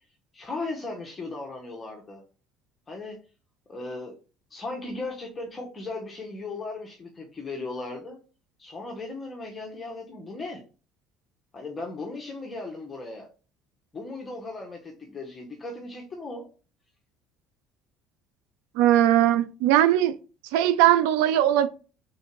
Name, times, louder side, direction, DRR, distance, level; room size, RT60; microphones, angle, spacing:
voice 1, 0.3-2.2 2.9-3.2 3.7-4.1 4.5-8.2 8.6-10.6 11.5-13.3 13.9-16.5, left 3 dB, 20° left, 0.9 m, -37 dB
voice 2, 18.7-20.2 20.5-21.7, right 12 dB, 90° right, 0.4 m, -20 dB
3.6 x 2.6 x 4.4 m
cardioid pair, 115°, 0 cm